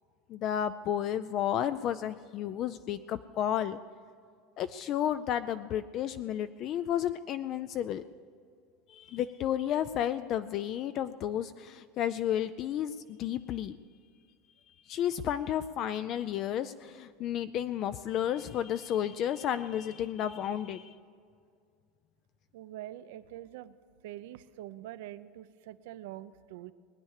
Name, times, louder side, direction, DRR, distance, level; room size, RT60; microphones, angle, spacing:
voice 1, 0.3-3.8 4.6-8.0 8.9-13.8 14.7-20.9, left 10 dB, 35° left, 12 dB, 0.4 m, -32 dB
voice 2, 22.5-23.7 24.0-26.7, right 13 dB, 75° right, 13 dB, 0.7 m, -44 dB
20.0 x 9.8 x 6.5 m, 2.2 s
supercardioid pair, 165°, 0 cm